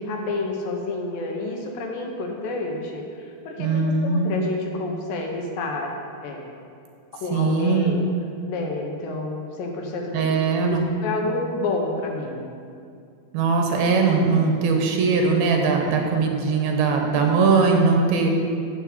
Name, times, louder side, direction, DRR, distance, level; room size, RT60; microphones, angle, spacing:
voice 1, 0.0-6.0 6.2-6.5 7.2-8.1 8.5-12.5 16.1-16.7 18.2-18.4, left 2 dB, 70° left, 1 dB, 2.6 m, -29 dB
voice 2, 3.6-4.4 7.3-7.9 10.1-10.9 13.3-18.4, right 4 dB, 80° right, 2 dB, 2.9 m, -20 dB
7.8 x 7.3 x 7.7 m, 2.4 s
omnidirectional pair, 4.4 m